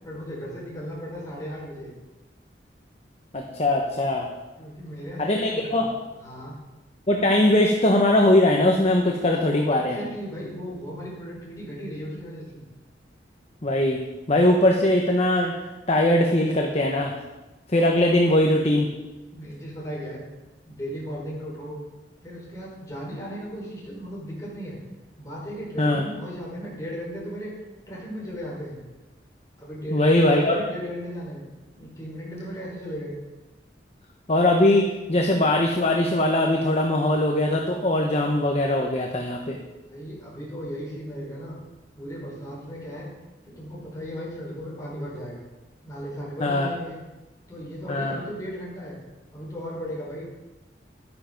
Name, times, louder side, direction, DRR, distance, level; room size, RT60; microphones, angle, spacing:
voice 1, 0.0-1.9 4.6-5.8 6.2-6.6 9.5-12.6 19.3-20.2 20.7-21.8 22.2-24.8 25.2-27.5 27.9-28.8 29.6-31.5 31.7-33.1 39.9-41.6 41.9-43.1 43.4-45.4 45.8-47.0 47.5-49.0 49.3-50.2, equal, 20° left, -5 dB, 4.9 m, -36 dB
voice 2, 3.3-4.3 5.2-5.9 7.1-10.0 13.6-14.0 14.3-15.5 15.9-17.1 17.7-18.9 25.8-26.0 29.9-30.6 34.3-39.6 46.4-46.7 47.9-48.2, left 1 dB, 35° left, 1 dB, 1.0 m, -21 dB
12.0 x 9.5 x 5.2 m, 1.1 s
head